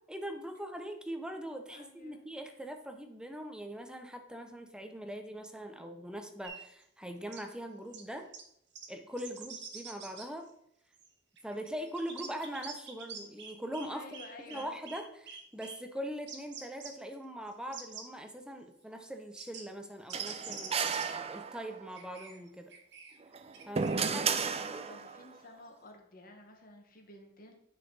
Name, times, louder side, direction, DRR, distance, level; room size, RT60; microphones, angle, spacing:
voice 1, 0.1-8.3 8.9-10.5 11.4-14.0 14.5-22.7 23.7-24.2 24.7-24.8, equal, 5° right, 6 dB, 0.8 m, -42 dB
voice 2, 1.7-2.2 9.3-9.5 13.9-14.7 23.9-27.5, left 2 dB, 50° left, 3 dB, 1.6 m, -52 dB
sound 1, 6.4-6.6 7.3-7.4 7.9-8.0 8.3-8.4 8.8-8.9 9.2-10.3 10.9-11.1 11.4-13.9 14.1-15.0 15.3-15.8 16.3-16.9 17.5-18.1 19.4-19.6 20.1-21.1 22.0-23.2 23.5-24.0, right 5 dB, 65° right, 1.5 m, -45 dB
sound 2, 20.1-21.9 23.2-25.3, right 6 dB, 35° right, 0.5 m, -33 dB
9.7 x 5.6 x 4.1 m, 0.74 s
head